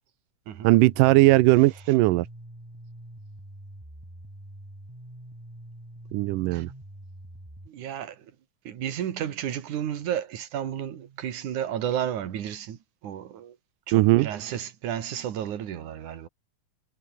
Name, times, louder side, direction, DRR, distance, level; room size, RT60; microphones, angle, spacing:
voice 1, 0.6-2.3 6.1-6.7 13.9-14.3, right 19 dB, 90° right, 2.2 m, -19 dB
sound 1, 0.8-7.7, right 1 dB, 5° right, 3.5 m, -45 dB
voice 2, 7.7-8.3 8.6-13.6 13.9-16.3, right 10 dB, 70° right, 3.3 m, -32 dB
omnidirectional pair, 3.7 m